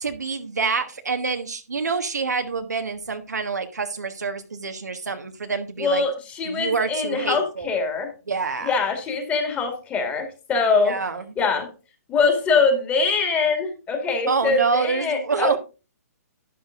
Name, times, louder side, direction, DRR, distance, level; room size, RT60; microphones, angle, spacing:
voice 1, 0.0-6.0 6.4-7.7 8.3-8.7 10.8-11.2 14.3-15.6, right 4 dB, 90° right, 6 dB, 1.4 m, -26 dB
voice 2, 5.8-8.1 8.6-11.0 11.4-11.7 12.1-15.6, left 4 dB, 15° left, 5 dB, 2.1 m, -23 dB
11.5 x 8.9 x 2.5 m, 0.31 s
hypercardioid pair, 140°, 9 cm